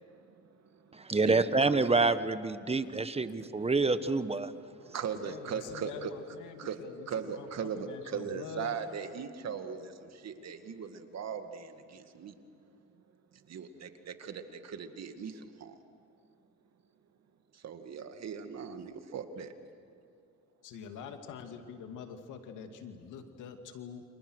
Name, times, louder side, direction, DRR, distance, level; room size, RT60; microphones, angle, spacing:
voice 1, 0.1-1.8 2.9-3.0 3.6-3.7 4.8-6.1 6.6-6.8 7.1-12.3 13.3-15.8 17.5-19.5, right 7 dB, 60° right, 7 dB, 2.2 m, -39 dB
voice 2, 0.9-4.5, right 3 dB, 20° right, 12 dB, 1.2 m, -27 dB
voice 3, 5.2-8.8 18.1-18.2 18.7-18.9 20.6-24.0, left 7 dB, 90° left, 5 dB, 2.4 m, -45 dB
29.5 x 27.0 x 6.4 m, 2.5 s
cardioid pair, 90°, 30 cm